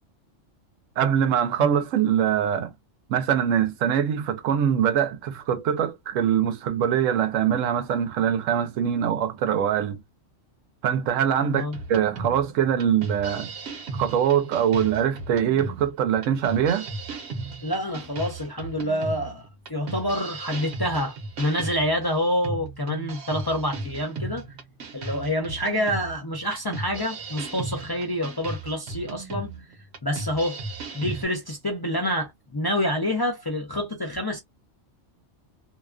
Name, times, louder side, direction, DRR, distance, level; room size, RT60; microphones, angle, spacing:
voice 1, 1.0-2.7 3.1-10.0 10.8-13.5 13.9-16.9, right 9 dB, 85° right, 0.9 m, -23 dB
sound 1, 11.7-31.2, right 3 dB, 60° right, 1.0 m, -36 dB
voice 2, 17.6-24.4 24.9-29.5 30.0-30.6 30.9-34.4, equal, 30° left, 0.4 m, -27 dB
2.7 x 2.2 x 2.3 m
omnidirectional pair, 1.3 m